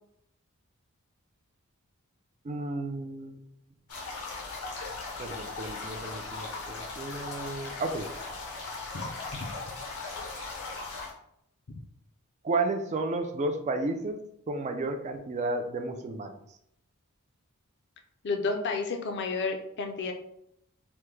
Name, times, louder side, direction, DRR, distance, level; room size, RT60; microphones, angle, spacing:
voice 1, 2.4-3.4 5.2-8.1 12.4-16.4, right 2 dB, 30° right, 6 dB, 0.3 m, -32 dB
sound 1, 3.9-11.1, left 3 dB, 85° left, 0.8 m, -38 dB
voice 2, 8.9-9.5 18.2-20.1, left 4 dB, 50° left, 4 dB, 0.4 m, -31 dB
3.4 x 2.1 x 3.1 m, 0.75 s
head